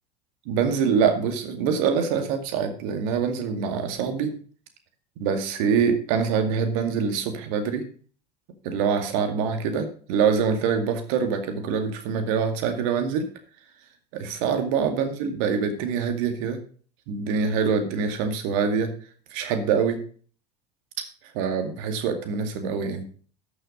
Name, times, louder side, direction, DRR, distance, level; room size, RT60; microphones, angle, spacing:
voice 1, 0.5-4.3 5.2-7.8 8.6-13.3 14.1-16.6 17.1-18.9 19.3-20.0 21.3-23.0, right 6 dB, 55° right, 7 dB, 2.1 m, -25 dB
13.0 x 6.3 x 5.1 m, 0.44 s
figure-of-eight pair, 70°, 21 cm